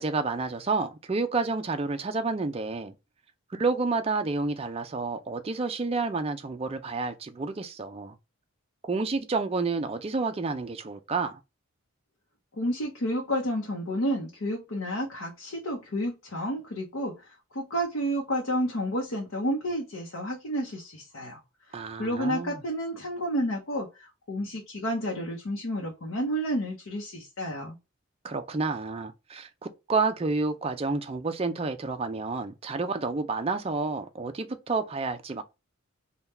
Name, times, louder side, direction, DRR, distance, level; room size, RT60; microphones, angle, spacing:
voice 1, 0.0-2.9 3.5-8.1 8.8-11.4 21.7-22.6 28.2-35.4, right 3 dB, 25° right, 0.4 m, -30 dB
voice 2, 12.6-17.1 17.5-21.4 22.0-27.8, equal, 70° left, 0.8 m, -30 dB
3.5 x 2.3 x 4.1 m
head